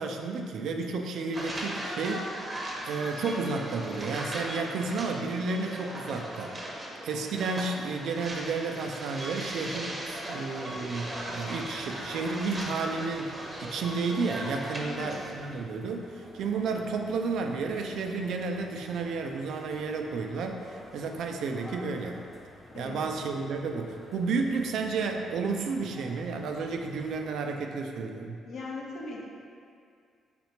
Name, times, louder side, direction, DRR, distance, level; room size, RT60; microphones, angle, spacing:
voice 1, 0.0-2.3 2.8-6.6 7.0-22.2 22.8-28.4, right 4 dB, 75° right, 3 dB, 0.3 m, -32 dB
sound 1, 1.3-15.3, right 1 dB, 30° right, 0.7 m, -38 dB
sound 2, 10.7-27.3, left 1 dB, 25° left, 0.9 m, -51 dB
voice 2, 14.8-15.2 22.7-23.0 28.5-29.2, left 3 dB, 65° left, -3 dB, 0.7 m, -39 dB
4.2 x 3.2 x 2.8 m, 2.3 s
supercardioid pair, 65°, 0 cm